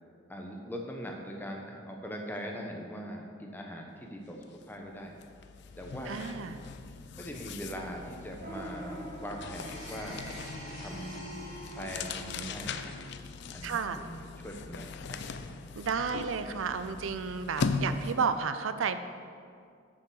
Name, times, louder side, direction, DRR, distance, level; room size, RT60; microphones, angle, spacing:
voice 1, 0.3-5.1 5.8-6.7 7.2-10.2 10.8-11.3 11.6-12.9 13.5-15.7, equal, 10° left, 1 dB, 1.0 m, -41 dB
sound 1, 4.4-4.6 4.9-18.4, left 4 dB, 60° left, 0.5 m, -39 dB
voice 2, 6.1-6.6 13.6-14.0 15.8-19.0, right 5 dB, 90° right, 11 dB, 0.5 m, -32 dB
sound 2, 8.4-12.9, right 1 dB, 45° right, 2.1 m, -44 dB
7.0 x 6.6 x 6.4 m, 2.3 s
head